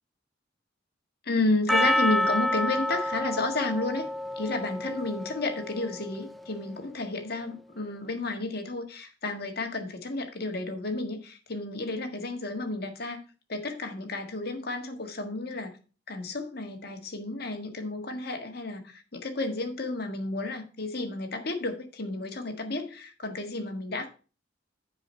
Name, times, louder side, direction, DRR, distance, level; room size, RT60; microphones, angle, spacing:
voice 1, 1.2-4.1 4.4-13.2 13.5-15.8 16.1-24.1, left 2 dB, 55° left, 5 dB, 1.6 m, -32 dB
Percussion, 1.7-6.2, left 1 dB, ahead, 0.3 m, -28 dB
9.2 x 4.9 x 5.5 m, 0.36 s
head